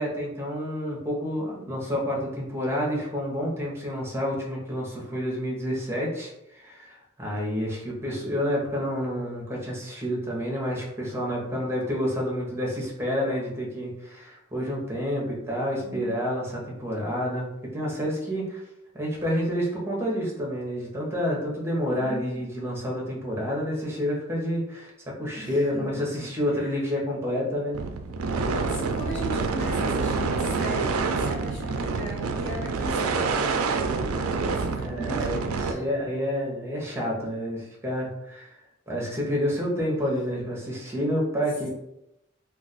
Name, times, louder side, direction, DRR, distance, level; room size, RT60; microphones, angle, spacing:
voice 1, 0.0-18.6 18.9-24.9 25.2-27.8 34.7-38.6 38.9-41.7, equal, 10° right, -3 dB, 0.8 m, -29 dB
voice 2, 15.8-16.2 21.9-22.4 25.4-26.8 28.5-33.5 34.4-35.8 40.4-40.5, equal, 55° left, -7 dB, 1.3 m, -39 dB
sound 1, 27.7-35.7, right 4 dB, 85° right, 0.4 m, -27 dB
2.3 x 2.3 x 3.9 m, 0.85 s
head